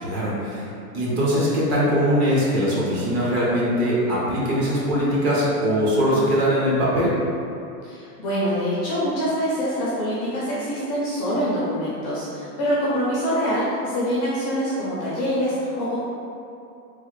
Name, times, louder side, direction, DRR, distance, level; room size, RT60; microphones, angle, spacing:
voice 1, 0.0-0.7 0.9-7.1, equal, 30° right, -6 dB, 0.7 m, -21 dB
voice 2, 7.8-16.0, equal, 30° left, -8 dB, 0.5 m, -25 dB
3.1 x 2.1 x 3.1 m, 2.6 s
hypercardioid pair, 135°, 48 cm